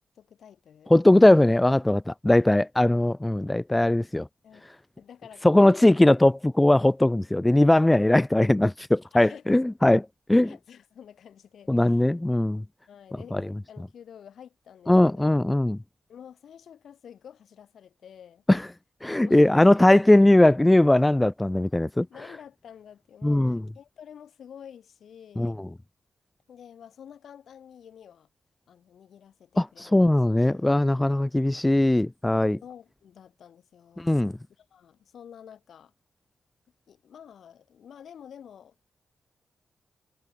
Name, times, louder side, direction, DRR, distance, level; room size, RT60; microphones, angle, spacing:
voice 1, 0.2-1.0 4.4-4.7 5.0-6.0 9.1-9.6 10.4-12.0 12.9-15.4 16.1-18.4 19.2-19.5 22.1-25.6 26.5-28.3 28.7-30.0 30.3-30.7 32.6-34.1 34.6-35.9 36.9-38.9, left 8 dB, 75° left, 6.9 m, -49 dB
voice 2, 0.9-4.3 5.4-10.0 10.3-10.5 11.7-12.6 13.3-13.4 14.9-15.8 18.5-18.7 19.0-22.1 23.2-23.6 25.4-25.7 29.6-32.6 34.0-34.4, left 1 dB, 15° left, 0.6 m, -20 dB
cardioid pair, 70°, 0 cm